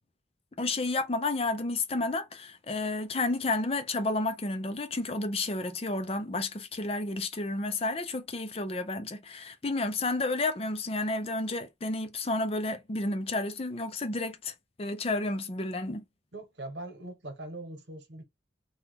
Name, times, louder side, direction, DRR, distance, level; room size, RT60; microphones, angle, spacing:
voice 1, 0.6-14.5 14.8-16.0, left 2 dB, 35° left, 0.5 m, -31 dB
voice 2, 16.3-18.3, right 2 dB, 85° right, 1.1 m, -41 dB
2.9 x 2.4 x 3.4 m
head